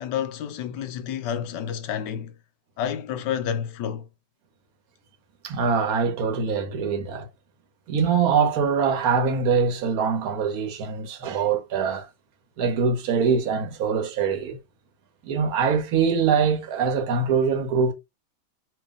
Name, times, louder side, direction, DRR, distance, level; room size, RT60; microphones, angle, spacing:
voice 1, 0.0-2.3 2.8-4.1, left 9 dB, 70° left, 1.1 m, -29 dB
voice 2, 5.4-7.3 7.9-12.1 12.6-14.6 15.2-17.9, right 6 dB, 55° right, 1.2 m, -23 dB
3.1 x 2.7 x 3.6 m
omnidirectional pair, 2.1 m